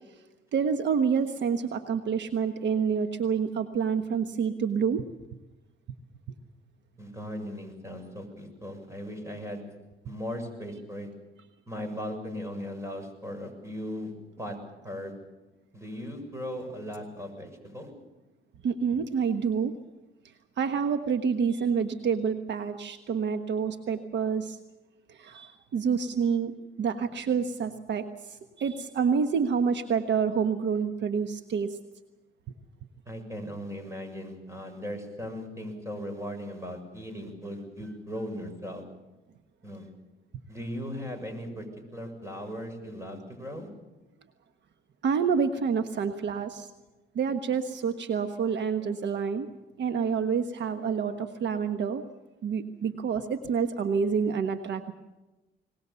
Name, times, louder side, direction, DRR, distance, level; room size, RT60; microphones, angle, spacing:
voice 1, 0.5-5.1 18.6-19.7 20.6-24.6 25.1-26.5 26.8-31.8 45.0-46.7 47.1-49.5 49.8-52.0 52.4-54.9, right 6 dB, 65° right, 8 dB, 1.3 m, -28 dB
voice 2, 7.0-9.6 10.0-11.1 11.7-14.6 14.8-15.1 15.7-17.9 33.1-38.8 39.6-39.9 40.5-41.7 41.9-43.7, equal, 15° right, 6 dB, 6.9 m, -38 dB
23.5 x 20.5 x 7.0 m, 1.1 s
cardioid pair, 90°, 20 cm